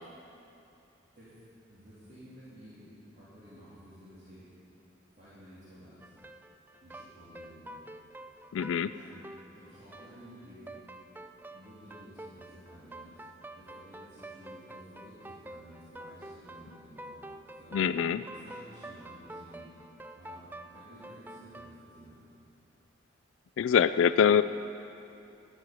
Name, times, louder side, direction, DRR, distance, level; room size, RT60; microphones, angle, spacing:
voice 1, 1.7-4.4 5.1-6.1 6.8-7.8 8.9-9.2 9.5-10.8 11.5-13.1 13.5-17.3 17.6-17.8 18.3-19.7 20.1-22.2, equal, 40° right, -13 dB, 3.4 m, -53 dB
sound 1, 6.0-21.7, right 1 dB, 10° right, 0.3 m, -47 dB
voice 2, 8.5-8.9 17.7-18.2 23.6-24.4, left 8 dB, 80° left, 13 dB, 0.3 m, -24 dB
13.0 x 6.4 x 9.5 m, 2.8 s
head